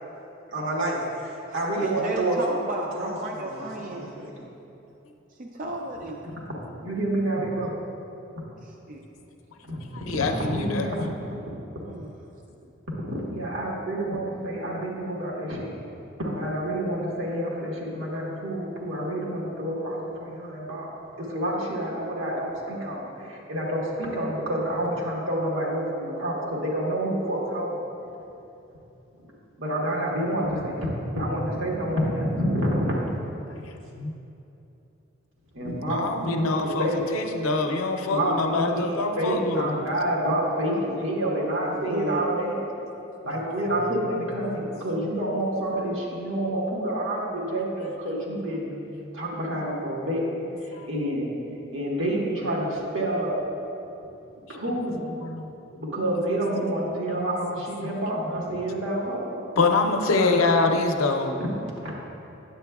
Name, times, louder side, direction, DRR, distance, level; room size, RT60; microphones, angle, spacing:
voice 1, 0.5-2.4 3.0-4.5 6.2-6.3 6.8-7.8 9.6-9.8 10.1-11.0 13.1-15.7 16.2-20.9 21.2-27.9 29.6-33.0 35.5-37.0 38.1-42.6 43.2-48.7 49.1-50.3 50.6-51.3 51.7-53.4 54.5-55.2 55.7-59.3 59.9-60.4 61.4-61.9, right 1 dB, 70° right, -4 dB, 1.4 m, -28 dB
voice 2, 1.8-4.1 5.4-6.2 8.6-9.0 11.9-12.1 41.7-42.3, right 2 dB, 40° right, 0 dB, 0.4 m, -33 dB
voice 3, 10.1-10.9 33.6-34.1 35.9-39.7 50.7-50.9 55.2-55.5 57.8-57.9 59.6-61.4, left 3 dB, 90° left, 4 dB, 0.6 m, -25 dB
9.3 x 7.5 x 2.3 m, 2.8 s
head